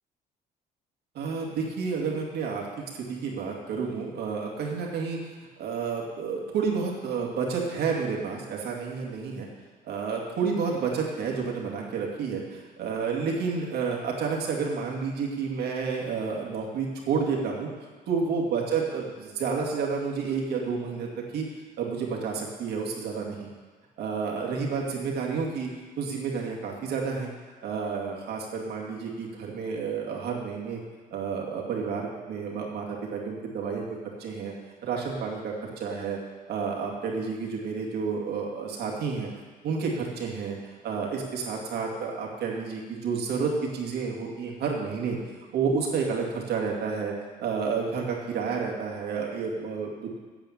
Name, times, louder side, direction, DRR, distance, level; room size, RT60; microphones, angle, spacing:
voice 1, 1.1-2.7 2.9-5.2 5.6-9.5 9.9-17.7 18.1-21.5 21.8-23.5 24.0-25.7 26.0-27.3 27.6-30.8 31.1-33.8 34.2-34.5 34.8-36.2 36.5-39.3 39.6-45.2 45.5-47.1 47.4-50.2, right 5 dB, 70° right, -1 dB, 2.5 m, -30 dB
9.2 x 7.8 x 7.5 m, 1.4 s
cardioid pair, 110°, 17 cm